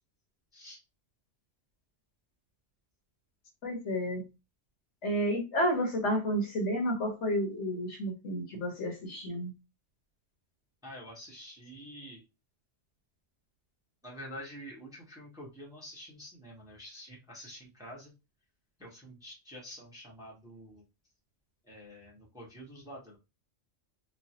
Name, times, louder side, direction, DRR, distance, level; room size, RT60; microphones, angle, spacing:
voice 1, 3.6-4.2 5.0-9.5, equal, 65° left, 1.2 m, -31 dB
voice 2, 10.8-12.2 14.0-18.1 18.8-20.8 21.6-23.2, equal, 5° right, 0.8 m, -47 dB
3.1 x 2.3 x 2.8 m
omnidirectional pair, 1.3 m